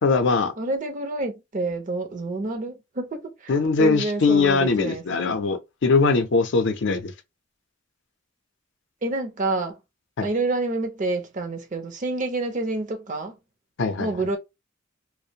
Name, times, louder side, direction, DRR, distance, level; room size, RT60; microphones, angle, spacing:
voice 1, 0.0-0.5 3.5-7.1 10.2-10.3 13.8-14.1, left 4 dB, 65° left, 0.5 m, -21 dB
voice 2, 0.6-3.3 3.8-5.0 9.0-9.8 10.2-13.4 14.0-14.4, right 2 dB, 40° right, 0.5 m, -28 dB
2.5 x 2.0 x 2.7 m
head